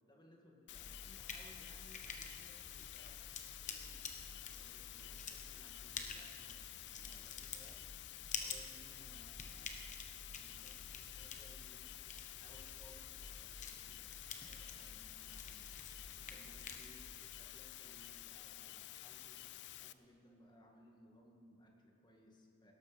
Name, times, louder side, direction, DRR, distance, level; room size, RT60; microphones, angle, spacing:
voice 1, 0.1-3.2 3.7-6.6 6.9-7.8 8.3-9.8 10.3-11.8 12.3-14.0 14.3-15.6 16.2-19.4 19.8-22.7, left 1 dB, 20° left, 0 dB, 2.0 m, -64 dB
sound 1, 0.7-19.9, left 14 dB, 60° left, 0.5 m, -51 dB
sound 2, 0.7-17.0, left 5 dB, 40° left, 1.2 m, -50 dB
18.5 x 12.5 x 5.4 m, 2.5 s
head